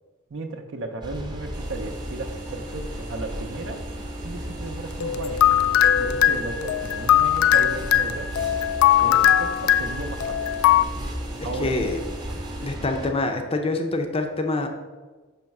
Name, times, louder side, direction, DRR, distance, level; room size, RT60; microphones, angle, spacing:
voice 1, 0.3-3.8 4.2-5.4 5.9-8.4 9.0-10.4 11.4-11.8, right 2 dB, 60° right, 5 dB, 0.6 m, -35 dB
sound 1, 1.0-13.1, right 1 dB, 20° right, 0.7 m, -35 dB
sound 2, 1.5-12.8, equal, 35° right, 1.0 m, -41 dB
sound 3, 5.0-10.8, left 11 dB, 80° left, 0.3 m, -20 dB
voice 2, 11.6-12.0 12.6-14.7, left 2 dB, 25° left, 5 dB, 0.5 m, -25 dB
6.4 x 3.1 x 5.8 m, 1.3 s
head